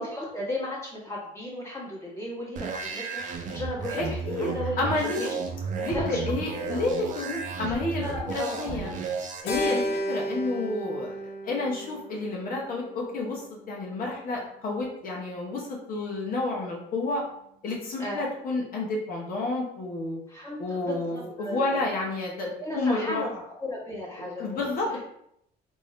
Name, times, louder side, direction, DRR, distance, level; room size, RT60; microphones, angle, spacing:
voice 1, 0.0-5.4 5.9-6.4 6.7-6.8 8.0-9.0 9.6-10.0 18.0-18.2 20.3-21.8 22.6-23.3 23.6-24.7, left 1 dB, 15° left, -5 dB, 1.4 m, -35 dB
sound 1, 2.6-9.4, right 5 dB, 50° right, 0.6 m, -33 dB
voice 2, 4.0-4.5 4.8-5.3 5.8-8.0 8.3-8.9 9.4-9.8 10.1-17.2 17.6-20.2 20.6-23.2 24.2-25.0, left 2 dB, 55° left, -2 dB, 0.9 m, -30 dB
Keyboard (musical), 9.5-13.9, equal, 90° left, 1.0 m, -33 dB
3.5 x 2.7 x 3.2 m, 0.75 s
cardioid pair, 110°, 17 cm